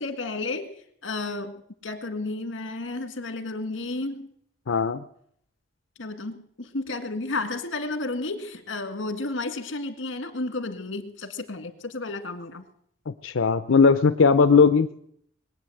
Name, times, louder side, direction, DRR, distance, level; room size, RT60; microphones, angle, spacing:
voice 1, 0.0-1.5 1.8-4.3 6.0-12.6, left 2 dB, 70° left, 8 dB, 1.9 m, -32 dB
voice 2, 4.7-5.0 13.1-14.9, left 5 dB, 90° left, 11 dB, 0.6 m, -18 dB
21.5 x 8.4 x 7.8 m, 0.70 s
head